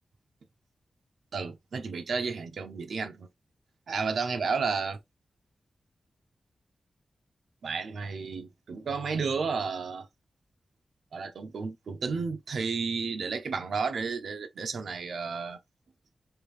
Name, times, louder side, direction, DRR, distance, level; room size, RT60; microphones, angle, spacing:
voice 1, 1.3-3.3 3.9-5.0 7.6-10.1 11.1-15.6, right 5 dB, 80° right, 0.7 m, -32 dB
3.4 x 2.7 x 3.2 m
wide cardioid pair, 180°, 0 cm